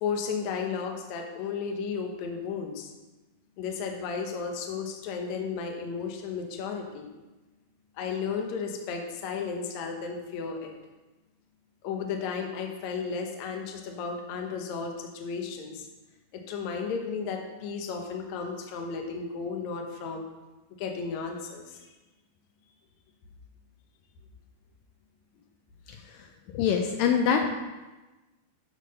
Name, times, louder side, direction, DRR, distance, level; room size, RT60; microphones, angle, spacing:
voice 1, 0.0-2.9 3.6-7.1 8.0-10.7 11.8-15.9 16.3-20.3 20.8-21.9, left 5 dB, 75° left, 2 dB, 1.7 m, -34 dB
voice 2, 26.5-27.6, left 7 dB, 90° left, 3 dB, 2.0 m, -24 dB
10.5 x 3.7 x 6.5 m, 1.1 s
omnidirectional pair, 4.5 m